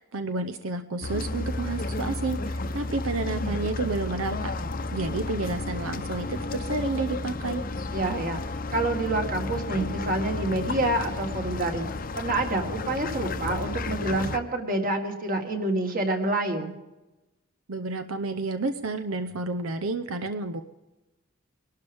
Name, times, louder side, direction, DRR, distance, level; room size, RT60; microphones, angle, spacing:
voice 1, 0.0-4.5 4.9-7.6 17.7-20.6, right 3 dB, 85° right, 9 dB, 0.7 m, -30 dB
sound 1, 1.0-14.4, left 2 dB, 45° left, 0.7 m, -32 dB
voice 2, 7.9-8.4 8.7-11.9 12.2-16.7, right 2 dB, 45° right, 4 dB, 1.9 m, -27 dB
22.5 x 12.5 x 3.5 m, 1.0 s
head